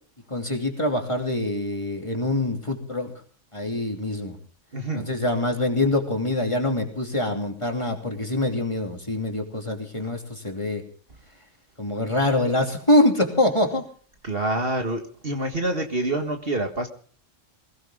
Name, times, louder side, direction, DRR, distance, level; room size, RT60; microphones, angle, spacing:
voice 1, 0.3-3.1 3.5-4.4 4.9-10.8 11.8-13.8, left 1 dB, 25° left, 2 dB, 3.0 m, -24 dB
voice 2, 4.7-5.0 14.3-16.9, right 1 dB, 50° right, 4 dB, 2.0 m, -26 dB
21.5 x 17.0 x 3.8 m, 0.43 s
omnidirectional pair, 1.3 m